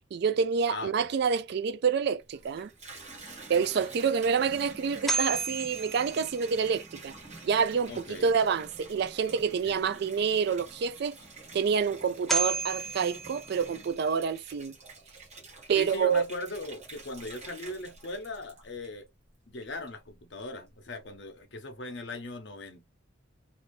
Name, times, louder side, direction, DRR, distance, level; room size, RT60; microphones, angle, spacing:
voice 1, 0.1-2.7 3.5-7.1 7.4-11.2 11.5-14.7 15.7-16.2, right 6 dB, 55° right, 0.3 m, -27 dB
voice 2, 0.7-1.1 7.9-8.3 9.6-10.0 15.7-19.1 19.5-22.9, left 2 dB, 60° left, 0.9 m, -39 dB
Water tap faucet / Bathtub (filling or washing), 2.2-19.2 19.6-20.2, right 3 dB, 35° right, 1.4 m, -48 dB
sound 1, 4.8-7.0 11.9-12.0 12.3-14.2, right 3 dB, ahead, 0.5 m, -33 dB
2.8 x 2.6 x 3.2 m
head